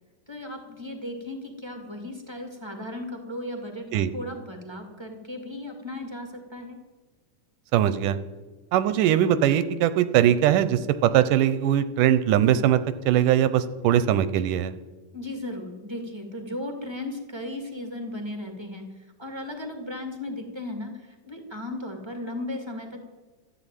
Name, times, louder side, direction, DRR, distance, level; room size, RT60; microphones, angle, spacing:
voice 1, 0.3-6.8 15.1-23.0, left 1 dB, 10° right, 4 dB, 1.4 m, -36 dB
voice 2, 7.7-8.2 8.7-12.8 13.1-14.7, right 11 dB, 80° right, 13 dB, 2.2 m, -21 dB
14.0 x 10.5 x 9.0 m, 1.3 s
omnidirectional pair, 3.9 m